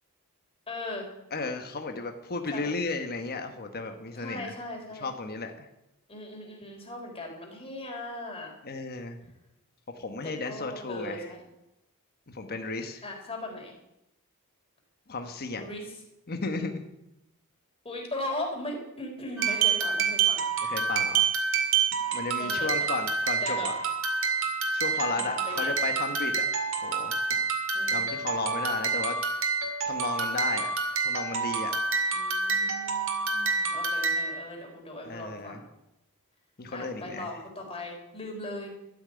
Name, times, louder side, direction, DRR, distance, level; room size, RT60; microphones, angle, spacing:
voice 1, 0.7-1.1 2.5-2.8 4.1-5.1 6.1-8.5 10.2-11.4 13.0-13.7 15.6-15.9 17.9-20.5 22.4-22.9 23.4-23.7 25.1-25.7 27.7-28.0 32.1-35.7 36.7-38.7, left 1 dB, 25° left, 1 dB, 3.6 m, -38 dB
voice 2, 1.3-4.5 5.0-5.7 8.6-9.2 9.9-11.3 12.3-13.0 15.1-15.7 16.3-16.8 20.6-21.3 22.1-23.8 24.7-27.4 27.9-29.1 29.8-30.7 31.0-31.7 35.0-35.6 36.6-37.3, left 3 dB, 45° left, 5 dB, 1.2 m, -34 dB
sound 1, 19.4-34.4, right 5 dB, 65° right, 2.2 m, -28 dB
13.0 x 7.8 x 9.5 m, 0.89 s
head